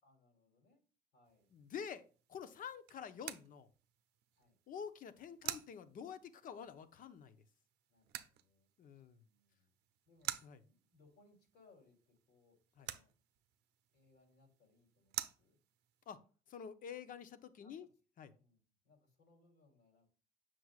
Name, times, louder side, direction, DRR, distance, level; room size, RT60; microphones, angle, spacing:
voice 1, 0.0-0.8 1.1-1.5 4.4-4.6 7.9-8.7 9.1-9.7 10.0-10.4 10.6-13.1 13.9-15.6 17.6-17.9 18.3-20.1, left 3 dB, 80° left, 1 dB, 3.0 m, -70 dB
sound 1, 1.3-16.1, right 14 dB, 80° right, 0.6 m, -51 dB
voice 2, 1.5-2.0 2.3-3.7 4.7-7.4 8.8-9.2 10.4-10.6 12.8-12.9 16.1-16.2 16.5-17.9 18.2-18.3, left 7 dB, 55° left, 12 dB, 0.8 m, -48 dB
7.7 x 6.1 x 2.4 m, 0.37 s
cardioid pair, 110°, 17 cm